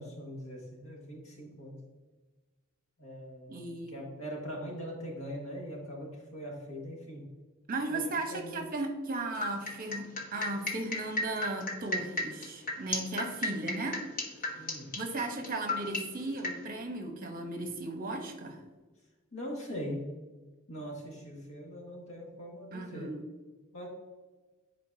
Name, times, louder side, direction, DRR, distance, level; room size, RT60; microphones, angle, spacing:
voice 1, 0.0-1.8 3.0-7.3 7.9-8.0 8.3-8.6 14.5-14.9 19.3-20.1 20.7-23.1 23.7-23.9, equal, 80° left, -2 dB, 2.0 m, -41 dB
voice 2, 3.5-4.1 7.7-14.0 15.0-18.6 22.7-23.3, right 2 dB, 45° right, 5 dB, 1.0 m, -36 dB
sound 1, 9.4-16.5, left 2 dB, 45° left, 1.0 m, -33 dB
10.0 x 4.5 x 2.8 m, 1.2 s
head